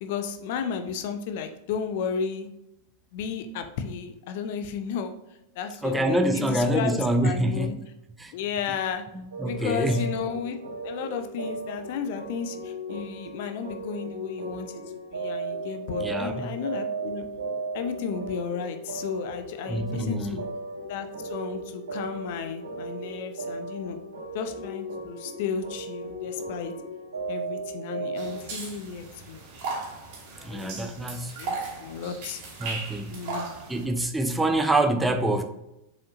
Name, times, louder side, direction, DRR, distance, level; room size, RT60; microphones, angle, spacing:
voice 1, 0.0-2.5 3.1-5.1 5.5-7.7 8.3-9.0 9.4-10.6 10.8-14.8 15.1-17.3 17.7-20.5 20.9-24.0 24.3-26.7 27.3-29.4 30.3-31.1 31.4-32.4 33.1-33.5, left 6 dB, 50° left, 8 dB, 0.6 m, -33 dB
voice 2, 5.8-7.8 8.2-8.3 9.1-10.0 16.0-16.5 19.7-20.4 30.4-31.3 32.6-33.2 33.7-35.4, right 1 dB, 10° right, 6 dB, 0.6 m, -26 dB
sound 1, 9.3-28.4, right 2 dB, 70° right, 1.5 m, -36 dB
sound 2, 28.1-33.8, right 4 dB, 45° right, 2.3 m, -37 dB
7.1 x 5.0 x 2.7 m, 0.88 s
figure-of-eight pair, 90°, 0 cm